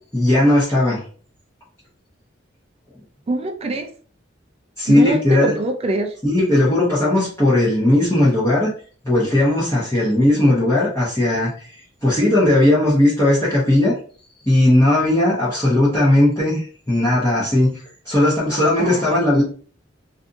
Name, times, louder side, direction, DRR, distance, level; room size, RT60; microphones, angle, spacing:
voice 1, 0.1-1.0 4.8-5.5 6.2-8.7 9.0-11.7 12.0-13.9 14.5-17.7 18.0-19.4, left 1 dB, 15° left, 0.8 m, -17 dB
voice 2, 3.3-3.9 4.9-6.1 18.8-19.2, right 2 dB, 30° right, 0.4 m, -24 dB
2.5 x 2.5 x 2.5 m
head